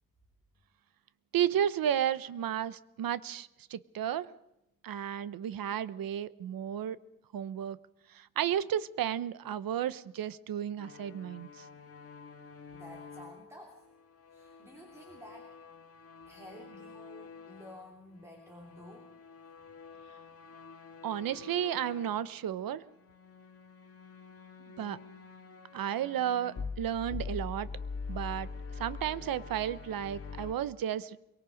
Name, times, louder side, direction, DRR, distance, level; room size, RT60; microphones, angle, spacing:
voice 1, 1.3-4.3 4.8-7.0 7.3-7.8 8.1-11.6 21.0-22.8 24.8-25.0 25.7-27.7 28.1-28.5 28.8-31.2, right 10 dB, 70° right, 16 dB, 0.9 m, -33 dB
sound 1, 10.8-17.9 18.2-22.3 22.9-30.5, left 4 dB, 40° left, 1.7 m, -45 dB
voice 2, 12.7-13.8 14.3-15.5 16.3-19.1, equal, 10° right, 0 dB, 2.9 m, -51 dB
23.0 x 23.0 x 5.2 m, 0.87 s
wide cardioid pair, 165°, 35 cm